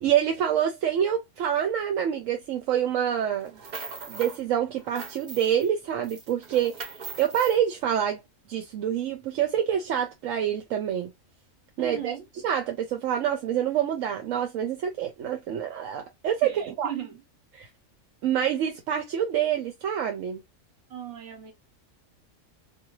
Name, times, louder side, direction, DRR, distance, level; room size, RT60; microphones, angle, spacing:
voice 1, 0.0-3.5 4.1-6.8 7.2-8.2 8.5-11.1 11.8-12.2 12.4-16.9 17.6-17.7 18.2-20.4, right 9 dB, 80° right, 0.9 m, -26 dB
sound 1, 3.4-4.4 4.7-5.7 6.0-7.6, right 4 dB, 45° right, 0.6 m, -40 dB
voice 2, 11.8-12.3 16.4-17.2 20.9-21.5, right 10 dB, 65° right, 1.2 m, -37 dB
2.6 x 2.2 x 2.9 m
omnidirectional pair, 1.4 m